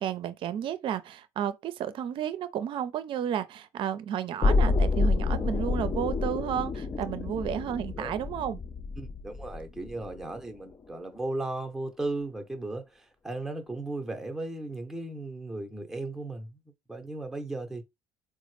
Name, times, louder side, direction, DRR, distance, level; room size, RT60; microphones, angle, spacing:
voice 1, 0.0-8.6, right 9 dB, 55° right, 0.5 m, -32 dB
sound 1, 4.4-10.4 10.7-10.8, left 3 dB, 30° left, 0.4 m, -28 dB
voice 2, 9.0-16.6 16.9-17.8, right 2 dB, 5° right, 0.8 m, -36 dB
4.0 x 2.1 x 3.2 m
hypercardioid pair, 70°, 10 cm